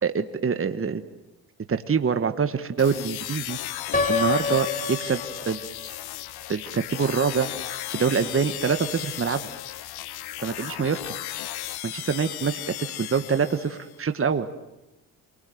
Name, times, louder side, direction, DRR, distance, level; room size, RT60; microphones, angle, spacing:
voice 1, 0.0-1.0 1.7-3.6 4.1-5.9 6.5-7.5 7.9-9.4 10.4-11.1 11.8-14.5, right 6 dB, 35° right, 9 dB, 1.6 m, -25 dB
sound 1, 2.8-14.0, left 14 dB, 75° left, 1.0 m, -35 dB
Piano, 3.9-5.9, left 4 dB, 20° left, 2.7 m, -27 dB
29.0 x 20.5 x 9.4 m, 1.0 s
supercardioid pair, 65°, 38 cm